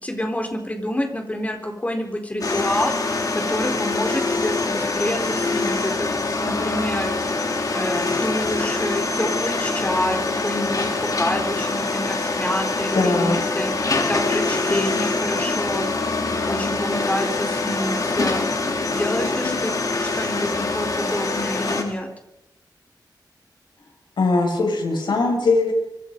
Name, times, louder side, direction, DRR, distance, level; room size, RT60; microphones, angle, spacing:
voice 1, 0.0-6.1 6.4-15.9 16.4-18.5 18.9-22.1, left 1 dB, 20° left, 4 dB, 4.0 m, -27 dB
sound 1, 2.4-21.8, left 3 dB, 50° left, 3.9 m, -24 dB
voice 2, 12.9-13.4 24.2-25.7, left 3 dB, 90° left, 2 dB, 6.9 m, -20 dB
25.0 x 24.5 x 5.4 m, 0.92 s
wide cardioid pair, 130°, 8 cm